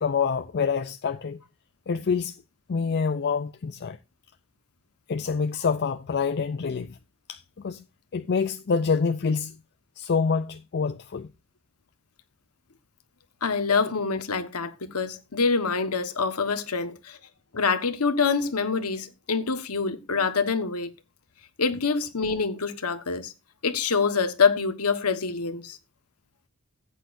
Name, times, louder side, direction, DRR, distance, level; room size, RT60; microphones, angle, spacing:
voice 1, 0.0-1.4 1.9-2.4 2.7-4.0 5.1-7.0 7.3-7.8 8.1-9.6 10.0-11.3, left 5 dB, 50° left, 0.5 m, -26 dB
voice 2, 13.4-17.2 17.5-20.9 21.6-23.3 23.6-25.8, left 5 dB, 90° left, 1.3 m, -25 dB
15.5 x 8.5 x 2.6 m
head